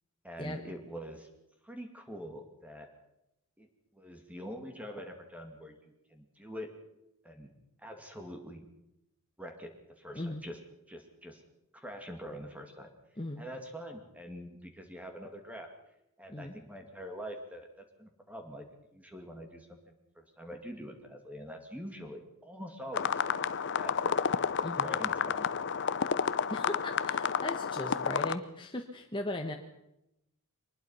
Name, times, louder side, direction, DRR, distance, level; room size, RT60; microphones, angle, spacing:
voice 1, 0.2-1.3 1.6-2.9 3.6-3.7 3.9-6.7 7.2-7.5 7.8-8.7 9.4-10.6 10.9-11.4 11.7-12.9 13.4-15.7 16.2-17.7 18.0-18.6 18.9-23.2 23.7-24.2 24.6-25.5, equal, 5° right, 4 dB, 2.3 m, -44 dB
sound 1, 22.9-28.4, left 6 dB, 55° left, 0.7 m, -31 dB
voice 2, 26.5-29.5, left 1 dB, 20° left, 2 dB, 1.3 m, -38 dB
23.5 x 20.0 x 5.7 m, 0.85 s
head